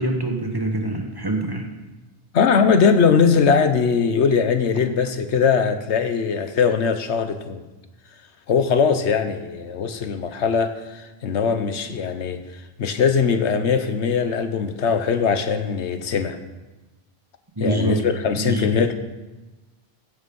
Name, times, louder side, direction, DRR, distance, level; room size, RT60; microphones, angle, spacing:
voice 1, 0.0-1.7 17.6-18.1 18.4-18.8, right 1 dB, 20° right, 2 dB, 1.3 m, -25 dB
voice 2, 2.3-7.6 8.5-12.4 12.8-16.4 17.6-18.9, left 6 dB, 90° left, 9 dB, 1.2 m, -20 dB
16.0 x 6.6 x 5.4 m, 1.1 s
omnidirectional pair, 1.1 m